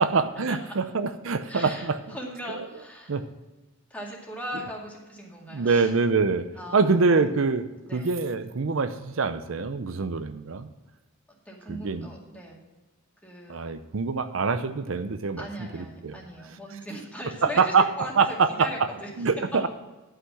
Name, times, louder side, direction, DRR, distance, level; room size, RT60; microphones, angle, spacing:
voice 1, 0.0-2.0 3.1-3.2 5.5-6.5 6.7-7.7 7.9-10.7 11.7-12.1 13.5-15.4 15.7-16.2 17.4-17.9 18.2-18.7 19.2-19.7, right 4 dB, 70° right, 10 dB, 0.6 m, -24 dB
voice 2, 1.4-3.2 3.9-5.9 6.6-7.3 7.9-8.1 11.5-12.6 13.2-13.7 15.4-19.1, equal, 5° left, -2 dB, 2.2 m, -39 dB
11.5 x 5.9 x 6.0 m, 1.2 s
head